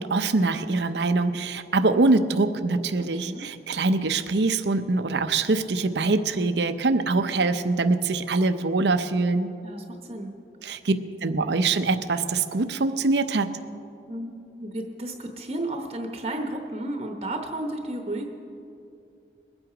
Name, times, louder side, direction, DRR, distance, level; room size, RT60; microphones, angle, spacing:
voice 1, 0.0-9.5 10.6-10.9 11.2-13.5, right 3 dB, 80° right, 9 dB, 0.7 m, -23 dB
voice 2, 3.1-3.5 9.6-10.3 14.1-18.3, right 1 dB, 35° right, 3 dB, 0.9 m, -33 dB
22.0 x 8.8 x 4.9 m, 2.5 s
head